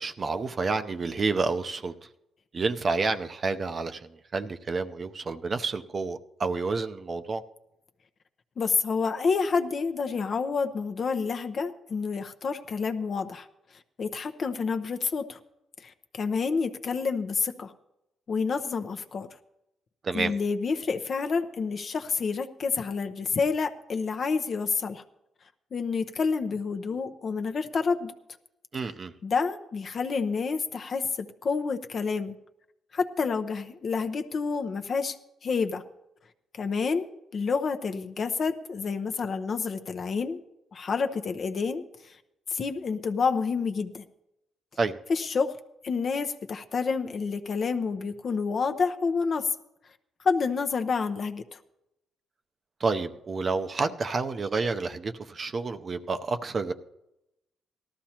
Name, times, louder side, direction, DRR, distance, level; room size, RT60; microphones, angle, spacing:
voice 1, 0.0-1.9 2.5-4.0 4.3-7.4 20.0-20.3 28.7-29.1 44.8-44.9 52.8-56.7, right 4 dB, 40° right, 8 dB, 0.6 m, -29 dB
voice 2, 8.6-13.5 14.0-15.4 15.8-17.7 18.3-19.3 20.1-25.0 25.7-28.1 29.2-32.3 32.9-35.2 35.4-35.8 36.6-40.4 40.7-41.8 42.5-44.0 45.1-45.5 45.8-49.5 50.2-51.6, left 5 dB, 50° left, 7 dB, 0.8 m, -28 dB
18.0 x 13.5 x 2.9 m, 0.89 s
cardioid pair, 90°, 0 cm